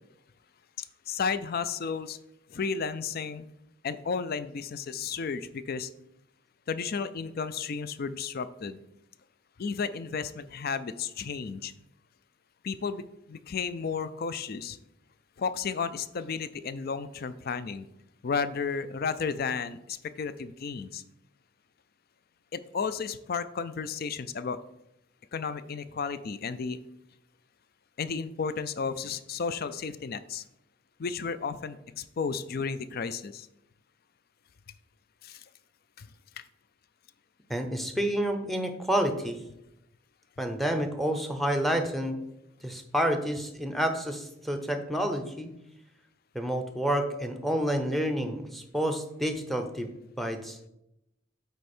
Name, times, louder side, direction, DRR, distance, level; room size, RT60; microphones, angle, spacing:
voice 1, 0.8-2.2 2.5-3.5 3.8-5.9 6.7-8.8 9.6-11.7 12.6-14.8 15.4-17.9 18.2-21.0 22.5-24.6 25.3-26.8 28.0-30.4 31.0-33.5 35.2-35.4 36.0-36.1 36.4-36.5, left 5 dB, 50° left, 14 dB, 0.4 m, -33 dB
voice 2, 37.5-39.4 40.4-42.2 42.6-45.5 46.3-50.6, equal, ahead, 6 dB, 0.7 m, -29 dB
8.1 x 4.5 x 4.4 m, 0.83 s
head